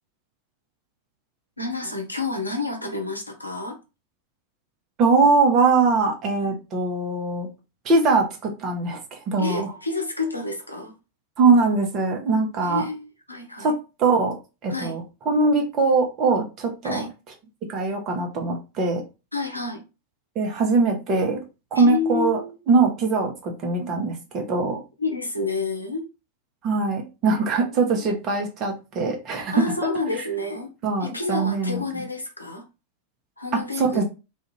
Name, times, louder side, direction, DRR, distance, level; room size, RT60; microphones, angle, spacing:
voice 1, 1.6-3.8 6.4-6.6 9.4-10.9 12.6-13.7 14.7-15.0 16.8-17.1 19.3-19.8 21.7-22.5 25.0-26.1 27.6-28.1 29.5-30.7 31.0-32.6 33.4-34.0, left 3 dB, 85° left, 0.6 m, -29 dB
voice 2, 5.0-7.5 7.8-9.0 9.3-9.7 11.4-12.8 13.6-14.4 14.6-17.0 17.6-19.0 20.4-21.4 21.7-22.4 22.7-24.8 26.6-29.6 30.8-31.8 33.5-34.0, right 3 dB, 35° right, 0.8 m, -22 dB
2.4 x 2.4 x 3.0 m
figure-of-eight pair, 90°, 0 cm